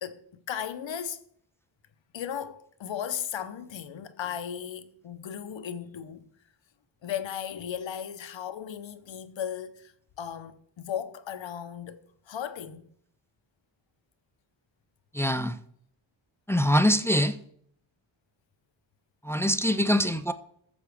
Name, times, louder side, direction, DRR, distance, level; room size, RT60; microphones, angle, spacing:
voice 1, 0.0-1.3 2.1-6.3 7.0-12.8 19.6-20.0, left 9 dB, 65° left, 0.8 m, -36 dB
voice 2, 15.1-15.6 16.5-17.4 19.2-20.3, equal, 5° left, 0.3 m, -23 dB
14.0 x 7.1 x 3.5 m
wide cardioid pair, 115°, 48 cm